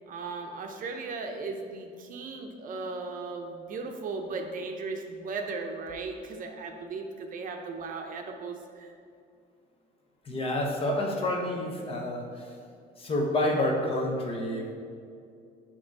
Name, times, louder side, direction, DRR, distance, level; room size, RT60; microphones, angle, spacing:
voice 1, 0.1-8.9, right 4 dB, 55° right, 3 dB, 0.6 m, -37 dB
voice 2, 10.2-12.5 13.0-14.7, left 1 dB, 35° left, 0 dB, 1.0 m, -29 dB
7.0 x 3.0 x 4.7 m, 2.3 s
cardioid pair, 110°, 17 cm